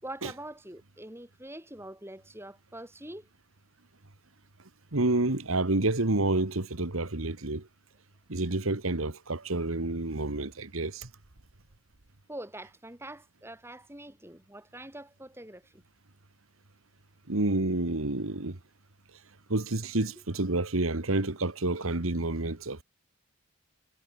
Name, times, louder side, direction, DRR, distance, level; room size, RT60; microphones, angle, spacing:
voice 1, 0.0-3.3 12.3-15.8, right 1 dB, 10° right, 7.9 m, -44 dB
voice 2, 4.9-7.7 8.3-11.1 17.3-18.6 19.5-22.8, right 2 dB, 90° right, 1.9 m, -29 dB
head